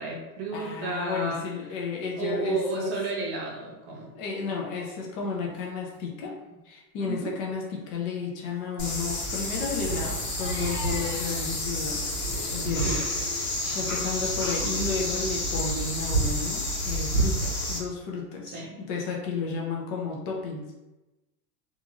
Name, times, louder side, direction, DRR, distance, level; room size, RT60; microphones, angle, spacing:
voice 1, 0.0-1.4 2.2-4.1 7.0-7.4 12.8-13.0 18.5-18.7, right 3 dB, 45° right, -1 dB, 0.7 m, -32 dB
voice 2, 0.5-2.9 4.1-6.3 6.7-12.1 12.4-13.0 13.3-20.8, left 4 dB, 35° left, -1 dB, 0.4 m, -32 dB
Crying sobbing, 5.5-5.6 5.9-6.0 6.4-6.6 7.0-7.3 8.4-11.5, left 1 dB, 5° left, 1.4 m, -43 dB
sound 1, 8.8-17.8, equal, 70° left, 1.2 m, -29 dB
2.9 x 2.5 x 2.4 m, 1.0 s
supercardioid pair, 135°, 48 cm